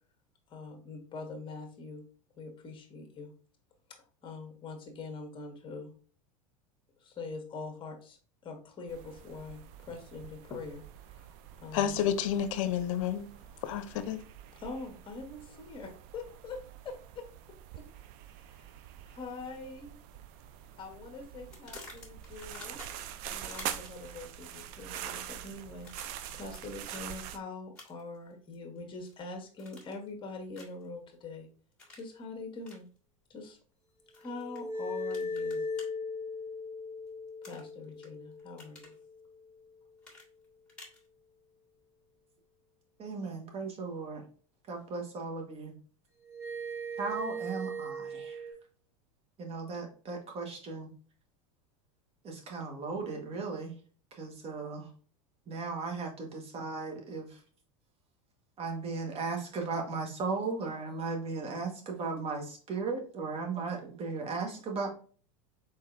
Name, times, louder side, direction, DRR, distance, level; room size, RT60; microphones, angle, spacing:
voice 1, 0.5-2.0 2.3-3.3 4.2-5.9 7.0-8.2 8.4-12.1 14.5-16.6 16.8-17.3 17.7-17.8 18.3-18.8 19.1-20.0 20.8-22.8 23.2-31.5 31.9-32.9 33.3-33.6 34.1-35.7 37.4-38.9, left 3 dB, 30° left, 1.5 m, -44 dB
sound 1, 8.9-27.4, right 11 dB, 55° right, 0.4 m, -45 dB
voice 2, 11.7-13.3 13.6-14.2, left 9 dB, 70° left, 0.6 m, -30 dB
sound 2, 21.5-23.2 23.5-24.1 24.8-25.2 25.8-26.6 26.9-27.1 27.8-28.2 28.5-29.2 29.6-30.1 30.5-30.9 31.8-32.1 32.6-32.8 34.1-34.6 35.1-35.9 37.4-38.1 38.4-39.0 40.0-41.0, left 3 dB, 5° left, 1.9 m, -50 dB
sound 3, 34.2-39.5 46.2-48.5, left 1 dB, 15° right, 1.8 m, -38 dB
voice 3, 43.0-44.2 44.7-45.8 47.0-48.5 49.4-50.9 52.2-53.7 54.1-54.9 55.5-57.4 58.6-64.9, right 4 dB, 35° right, 1.3 m, -36 dB
4.0 x 4.0 x 2.5 m
hypercardioid pair, 105°, 17 cm